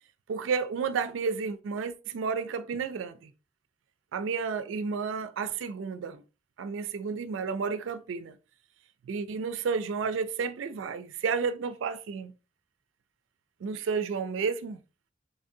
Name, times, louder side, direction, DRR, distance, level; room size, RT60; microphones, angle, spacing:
voice 1, 0.3-3.3 4.1-6.2 6.6-8.4 9.1-12.3 13.6-14.8, right 5 dB, 85° right, 0.3 m, -31 dB
3.9 x 3.6 x 2.6 m
head